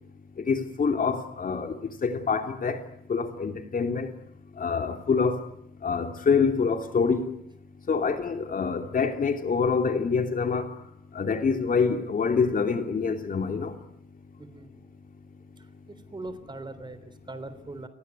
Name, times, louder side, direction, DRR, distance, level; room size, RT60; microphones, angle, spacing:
voice 1, 0.4-4.1 4.5-5.5 5.8-7.4 7.9-10.8 11.1-13.8, left 5 dB, 45° left, 7 dB, 2.9 m, -26 dB
voice 2, 14.4-14.8 15.9-17.9, right 2 dB, 20° right, 12 dB, 3.5 m, -41 dB
30.0 x 18.0 x 9.6 m, 0.75 s
cardioid pair, 90°, 20 cm